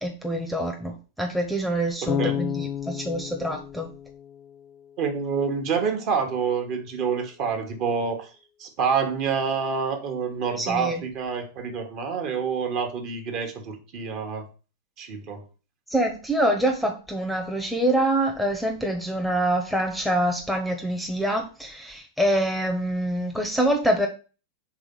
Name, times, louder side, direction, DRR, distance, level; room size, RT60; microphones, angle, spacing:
voice 1, 0.0-3.9 10.6-11.0 15.9-24.1, right 1 dB, ahead, 2 dB, 0.8 m, -25 dB
voice 2, 2.0-2.4 5.0-8.3 8.6-14.5 15.0-15.4, right 6 dB, 40° right, 4 dB, 1.2 m, -27 dB
Bass guitar, 2.1-5.1, left 10 dB, 30° left, 0.4 m, -32 dB
4.8 x 3.7 x 5.3 m, 0.35 s
figure-of-eight pair, 90°, 0 cm